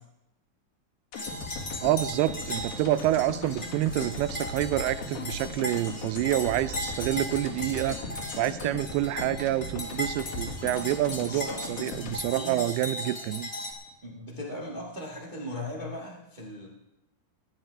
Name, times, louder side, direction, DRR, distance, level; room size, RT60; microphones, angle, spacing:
sound 1, 1.1-13.4 13.7-13.8, left 3 dB, 70° left, 3.8 m, -39 dB
sound 2, 1.1-13.7, left 1 dB, 30° left, 1.3 m, -37 dB
voice 1, 1.8-8.0 8.4-13.5, right 14 dB, 85° right, 14 dB, 2.5 m, -28 dB
voice 2, 11.2-11.6 12.3-12.6 14.0-16.7, left 1 dB, 50° right, -3 dB, 0.5 m, -38 dB
19.5 x 11.0 x 3.4 m, 0.88 s
omnidirectional pair, 4.4 m